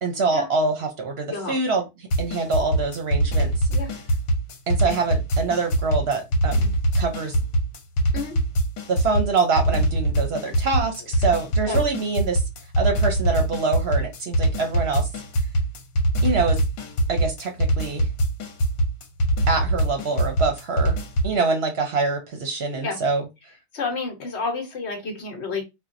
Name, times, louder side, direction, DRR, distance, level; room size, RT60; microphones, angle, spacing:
voice 1, 0.0-1.9 2.2-3.7 4.7-7.3 8.9-12.4 12.8-15.1 16.2-16.6 17.1-18.1 19.5-21.0 21.2-23.2, right 4 dB, 55° right, 0.8 m, -25 dB
sound 1, 2.1-21.4, right 1 dB, 80° left, 1.1 m, -23 dB
voice 2, 23.7-25.6, left 4 dB, 55° left, 1.0 m, -30 dB
4.2 x 2.2 x 2.5 m
omnidirectional pair, 1.4 m